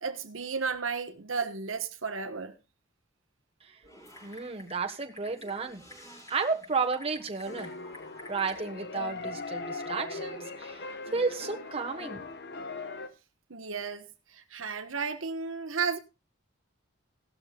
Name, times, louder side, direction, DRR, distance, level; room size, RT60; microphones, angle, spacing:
voice 1, 0.0-2.5 13.5-14.0 14.3-16.0, right 5 dB, 90° right, 1.3 m, -33 dB
Typing, 3.8-8.6, equal, 15° left, 4.9 m, -50 dB
voice 2, 4.2-5.8 6.3-7.7 8.3-10.8 11.1-12.2, right 4 dB, 30° right, 1.5 m, -32 dB
sound 1, 7.5-13.1, left 3 dB, 55° left, 1.3 m, -39 dB
17.0 x 13.0 x 2.4 m
head